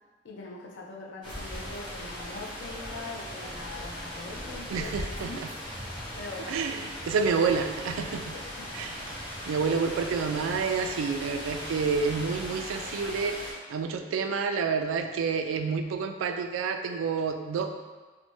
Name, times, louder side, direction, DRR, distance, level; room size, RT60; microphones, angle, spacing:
voice 1, 0.2-5.4 6.1-6.6 8.1-8.7, left 3 dB, 65° left, -1 dB, 0.5 m, -42 dB
sound 1, 1.2-13.5, equal, 25° left, 1.1 m, -39 dB
sound 2, 2.7-12.5, equal, 10° right, 0.6 m, -49 dB
voice 2, 4.7-5.5 6.5-8.3 8.7-9.0 9.5-17.7, right 5 dB, 85° right, 6 dB, 0.3 m, -29 dB
4.0 x 2.1 x 3.0 m, 1.3 s
head